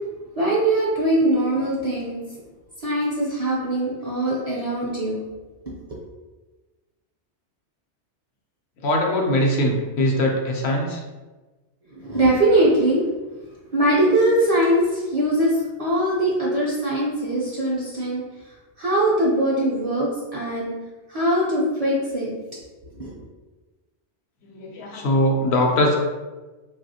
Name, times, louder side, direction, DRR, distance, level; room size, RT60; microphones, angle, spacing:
voice 1, 0.3-2.2 2.8-5.3 5.9-6.0 11.9-13.1 13.7-18.2 18.8-20.7 21.1-22.3 23.0-23.2, right 1 dB, 45° right, -6 dB, 0.5 m, -21 dB
voice 2, 8.8-11.0 24.4-26.0, left 1 dB, 70° left, 0 dB, 0.8 m, -21 dB
3.2 x 2.4 x 2.7 m, 1.2 s
omnidirectional pair, 1.2 m